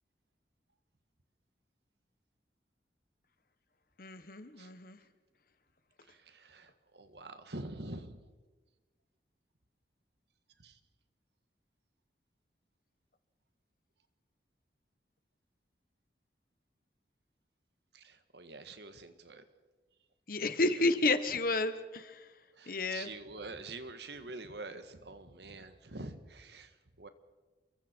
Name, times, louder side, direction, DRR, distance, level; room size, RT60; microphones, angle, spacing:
voice 1, 4.0-5.0 20.3-22.2 22.7-23.1, left 2 dB, 55° left, 11 dB, 1.3 m, -31 dB
voice 2, 6.0-8.2 10.6-10.8 17.9-19.4 20.7-20.8 22.5-27.1, right 2 dB, 70° right, 9 dB, 1.7 m, -46 dB
29.5 x 23.0 x 4.6 m, 1.3 s
head